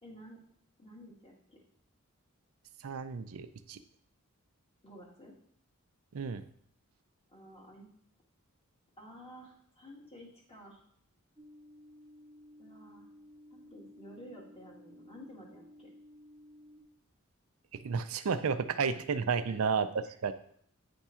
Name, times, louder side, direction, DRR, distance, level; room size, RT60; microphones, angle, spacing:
voice 1, 0.0-0.4 0.8-1.6 4.8-5.3 7.3-7.9 9.0-10.8 12.6-13.1 13.5-15.9 19.5-19.6 20.1-20.2, equal, 25° left, -3 dB, 1.8 m, -52 dB
voice 2, 2.8-3.8 6.1-6.4 17.7-19.9 20.2-20.3, right 5 dB, 75° right, 11 dB, 0.5 m, -32 dB
sound 1, 11.4-16.8, left 1 dB, 5° right, 1.0 m, -55 dB
9.3 x 3.6 x 4.3 m, 0.64 s
head